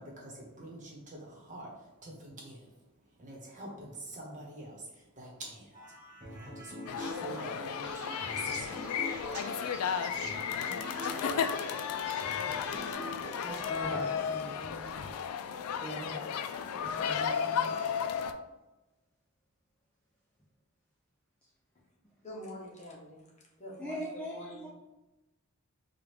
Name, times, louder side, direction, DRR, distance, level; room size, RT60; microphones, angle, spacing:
voice 1, 0.0-1.7 2.0-2.7 3.2-5.7 6.3-8.8, right 1 dB, 35° right, -3 dB, 1.1 m, -46 dB
sound 1, 5.7-13.8, equal, 15° right, 1.5 m, -45 dB
sound 2, 6.9-18.3, left 7 dB, 90° left, 0.3 m, -34 dB
sound 3, 7.8-12.9, right 6 dB, 85° right, 0.6 m, -51 dB
voice 2, 13.4-15.1 15.8-16.3 16.7-17.7 23.8-24.7, right 1 dB, 5° left, -3 dB, 0.4 m, -41 dB
voice 3, 22.2-23.3 23.6-24.7, left 1 dB, 35° left, -3 dB, 1.0 m, -46 dB
4.7 x 2.4 x 3.3 m, 1.0 s
head